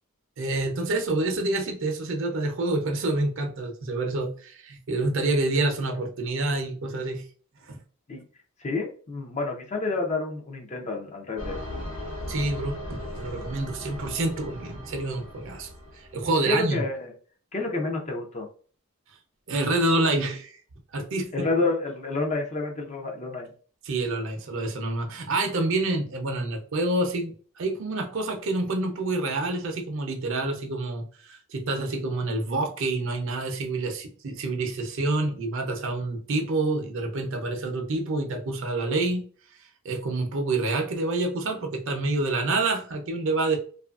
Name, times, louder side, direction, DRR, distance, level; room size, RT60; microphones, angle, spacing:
voice 1, 0.4-7.2 7.7-7.8 12.3-15.7 16.0-16.8 19.5-20.6 20.9-21.5 23.8-39.2 39.8-43.6, right 2 dB, 60° right, 4 dB, 0.5 m, -27 dB
voice 2, 8.6-11.6 16.4-17.1 17.5-18.5 21.3-23.5, left 3 dB, 30° left, 2 dB, 0.4 m, -29 dB
sound 1, 11.4-16.4, left 1 dB, 70° left, 1.0 m, -38 dB
2.8 x 2.4 x 2.3 m, 0.42 s
head